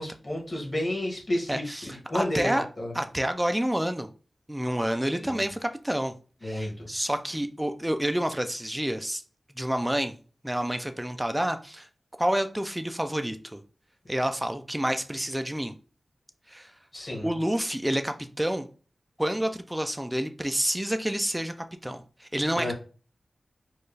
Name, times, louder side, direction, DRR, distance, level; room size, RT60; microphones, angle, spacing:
voice 1, 0.0-2.9 5.1-5.4 6.4-6.9 16.9-17.3 22.6-22.7, left 1 dB, 30° left, -2 dB, 1.6 m, -31 dB
voice 2, 1.5-2.6 2.9-4.1 4.5-6.1 6.4-9.2 9.6-10.2 10.4-11.9 12.2-13.6 14.1-15.7 16.5-16.7 17.2-18.7 19.2-21.5 21.8-22.7, right 1 dB, 10° right, 7 dB, 0.3 m, -28 dB
4.4 x 2.4 x 3.2 m, 0.38 s
wide cardioid pair, 85°, 0 cm